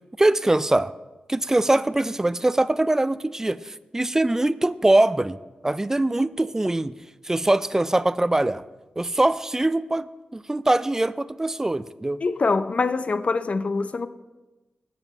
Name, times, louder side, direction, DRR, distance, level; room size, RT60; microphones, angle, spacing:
voice 1, 0.2-0.9 1.3-5.4 5.6-6.9 7.2-8.6 9.0-12.2, right 2 dB, 15° right, 0.3 m, -22 dB
voice 2, 12.2-14.1, left 4 dB, 50° left, 0.5 m, -24 dB
7.8 x 7.6 x 5.2 m
cardioid pair, 60°, 3 cm